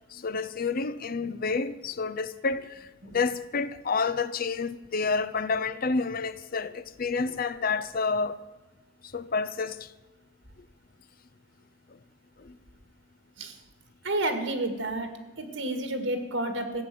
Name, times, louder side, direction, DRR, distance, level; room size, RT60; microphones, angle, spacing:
voice 1, 0.1-8.4 9.0-9.9 12.4-12.6, left 4 dB, 50° left, 0.6 m, -29 dB
voice 2, 14.0-15.1 15.4-16.8, right 2 dB, 75° right, 2.0 m, -30 dB
14.5 x 9.1 x 7.7 m
head